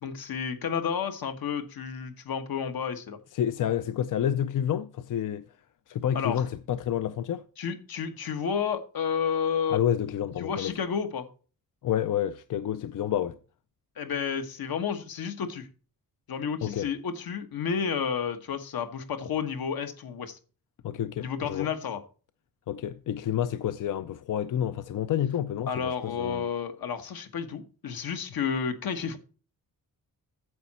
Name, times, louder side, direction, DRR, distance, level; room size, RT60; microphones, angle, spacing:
voice 1, 0.0-3.2 6.1-6.4 7.6-9.8 10.4-11.3 14.0-15.7 16.3-20.4 21.2-22.0 25.7-29.2, left 7 dB, 80° left, 1.4 m, -31 dB
voice 2, 3.3-5.4 5.9-7.4 9.7-10.7 11.8-13.4 16.6-16.9 20.8-21.7 22.7-26.5, left 10 dB, 60° left, 0.5 m, -29 dB
9.5 x 7.1 x 4.2 m
wide cardioid pair, 155°, 35 cm